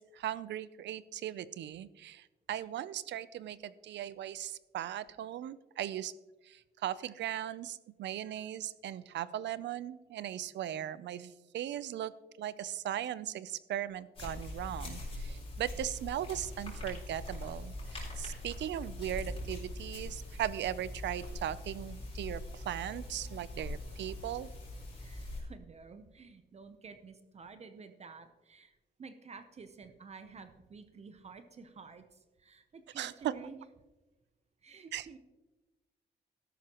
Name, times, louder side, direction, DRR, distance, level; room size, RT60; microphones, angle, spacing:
voice 1, 0.0-6.1 6.4-12.1 12.4-24.5 33.0-33.3 34.9-35.1, right 11 dB, 85° right, 17 dB, 0.5 m, -38 dB
sound 1, 14.1-25.4, left 1 dB, 30° left, 4.0 m, -42 dB
voice 2, 25.0-33.6 34.6-35.2, right 4 dB, 35° right, 9 dB, 0.7 m, -51 dB
13.0 x 11.0 x 2.9 m, 1.1 s
wide cardioid pair, 150°, 18 cm